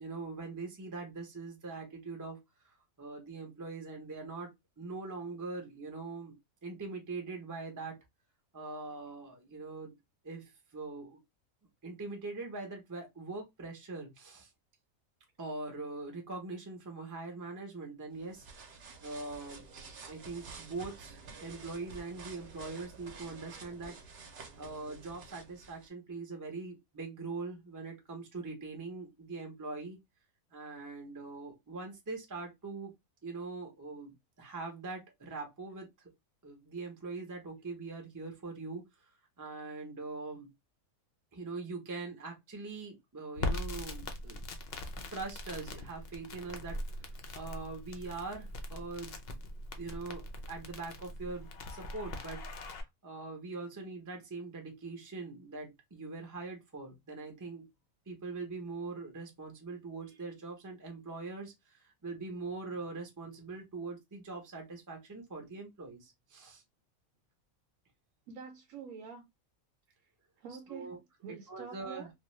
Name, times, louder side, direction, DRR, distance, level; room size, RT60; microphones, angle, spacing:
voice 1, 0.0-6.4 6.6-8.0 8.5-9.9 10.2-11.2 11.8-14.5 15.4-18.5 19.0-19.6 20.1-24.0 24.6-30.0 30.5-32.9 33.2-35.9 36.4-38.9 39.4-40.5 41.3-44.4 45.1-49.2 49.8-52.5 53.0-57.7 58.1-66.6 70.7-71.0 71.3-72.1, right 3 dB, 20° right, 0.5 m, -42 dB
sound 1, 18.1-25.9, right 4 dB, 55° right, 0.9 m, -50 dB
Crackle, 43.3-52.8, left 2 dB, 60° left, 0.7 m, -41 dB
voice 2, 68.3-69.3 70.4-72.1, right 6 dB, 80° right, 1.0 m, -47 dB
2.6 x 2.3 x 3.0 m
omnidirectional pair, 1.5 m